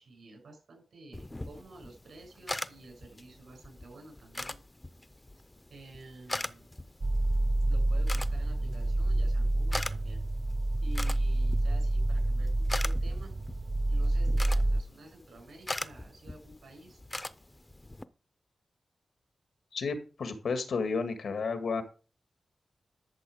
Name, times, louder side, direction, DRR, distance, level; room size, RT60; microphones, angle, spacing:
voice 1, 0.0-4.6 5.7-6.7 7.7-10.2 10.8-13.3 13.9-17.0, right 2 dB, 85° right, 2 dB, 6.9 m, -51 dB
sound 1, 1.1-18.0, left 1 dB, 15° left, 0.5 m, -42 dB
sound 2, 7.0-14.8, right 1 dB, 35° right, 0.6 m, -28 dB
voice 2, 19.7-21.8, left 4 dB, 90° left, 9 dB, 1.8 m, -32 dB
12.5 x 7.0 x 5.0 m, 0.36 s
wide cardioid pair, 155°, 0 cm